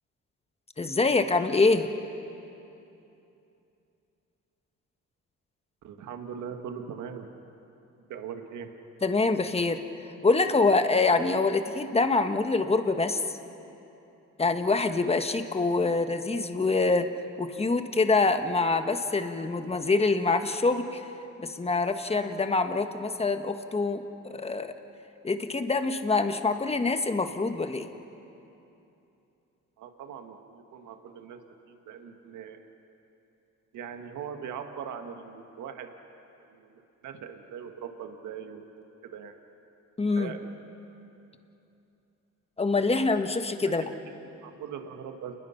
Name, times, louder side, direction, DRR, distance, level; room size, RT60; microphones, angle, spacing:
voice 1, 0.8-1.9 9.0-13.2 14.4-17.1 17.4-21.0 21.4-24.7 25.2-27.9 40.0-40.3 42.6-43.8, left 3 dB, 20° left, 8 dB, 1.4 m, -25 dB
voice 2, 5.8-7.3 8.1-8.7 29.8-31.4 31.7-32.6 33.7-35.9 36.5-39.3 40.2-40.5 43.6-43.7 44.4-45.3, right 7 dB, 80° right, 5 dB, 1.7 m, -40 dB
29.0 x 21.0 x 5.8 m, 2.9 s
cardioid pair, 90°, 30 cm